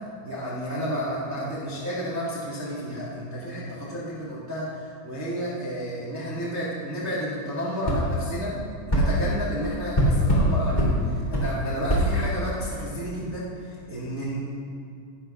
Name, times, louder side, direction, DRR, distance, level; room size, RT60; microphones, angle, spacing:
voice 1, 0.2-8.6 8.9-14.4, equal, 70° right, -7 dB, 0.6 m, -31 dB
sound 1, 7.8-8.0 8.9-9.1 9.9-10.5 10.8-10.9 11.3-11.5 11.9-12.0, right 1 dB, 20° left, 1.3 m, -21 dB
18.5 x 12.0 x 2.5 m, 2.4 s
omnidirectional pair, 5.4 m